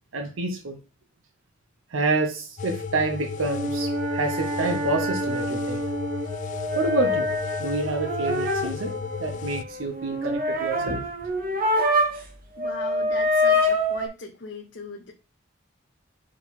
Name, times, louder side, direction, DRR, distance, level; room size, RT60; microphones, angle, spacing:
voice 1, 0.1-0.8 1.9-5.8 6.7-7.3 7.6-8.9 9.2-11.1, right 3 dB, 90° right, 0.8 m, -28 dB
sound 1, 2.6-9.6, left 5 dB, 40° left, 0.4 m, -34 dB
sound 2, 3.4-12.3 12.6-14.1, left 1 dB, 45° right, 1.2 m, -26 dB
voice 2, 12.6-15.1, left 4 dB, 60° left, 0.8 m, -39 dB
4.9 x 3.9 x 5.7 m
head